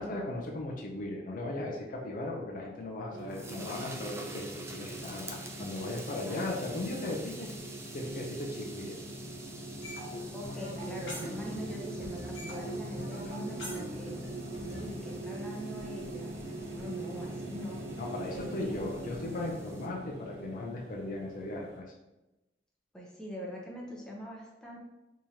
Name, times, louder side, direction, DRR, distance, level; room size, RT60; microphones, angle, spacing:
voice 1, 0.0-7.5 7.9-8.9 18.0-21.8, left 2 dB, 50° left, -1 dB, 0.5 m, -37 dB
sound 1, 2.9-19.9, right 2 dB, 15° right, 0.3 m, -49 dB
sound 2, 3.1-21.8, right 1 dB, 70° right, 0.8 m, -42 dB
sound 3, 9.8-11.8 12.0-14.8, equal, 85° left, 1.2 m, -43 dB
voice 2, 10.3-14.1 14.6-16.3 16.7-17.8 18.3-18.8 22.9-24.8, equal, 5° left, -4 dB, 0.7 m, -42 dB
3.6 x 3.0 x 2.8 m, 1.0 s
head